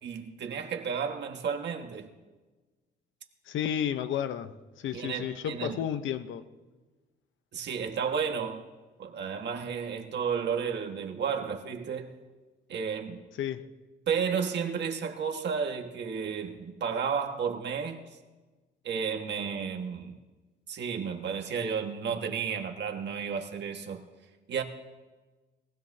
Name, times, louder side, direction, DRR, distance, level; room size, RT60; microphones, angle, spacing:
voice 1, 0.0-2.1 4.9-5.8 7.5-8.6 9.0-12.1 12.7-13.2 14.1-18.0 18.8-20.2 20.7-24.0 24.5-24.6, right 6 dB, 60° right, 1.7 m, -32 dB
voice 2, 3.5-6.5 13.4-13.7, left 9 dB, 75° left, 0.9 m, -32 dB
22.0 x 16.0 x 2.8 m
cardioid pair, 90°, 20 cm